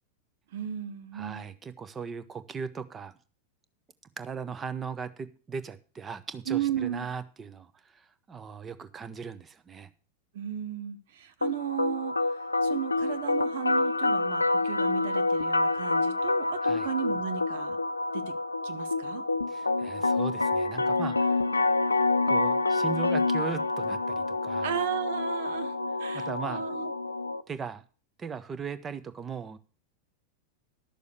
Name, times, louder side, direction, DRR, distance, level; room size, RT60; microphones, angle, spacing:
voice 1, 0.5-1.5 6.5-7.1 10.3-17.8 18.1-18.2 18.6-19.2 24.6-26.9, right 10 dB, 55° right, 1.1 m, -35 dB
voice 2, 1.1-3.1 4.2-9.9 16.6-16.9 19.5-21.3 22.3-24.7 26.1-26.6 27.5-27.8 28.2-29.6, right 6 dB, 20° right, 1.0 m, -38 dB
sound 1, 11.4-27.4, left 3 dB, 80° left, 0.6 m, -27 dB
12.0 x 6.8 x 6.6 m
figure-of-eight pair, 90°, 0 cm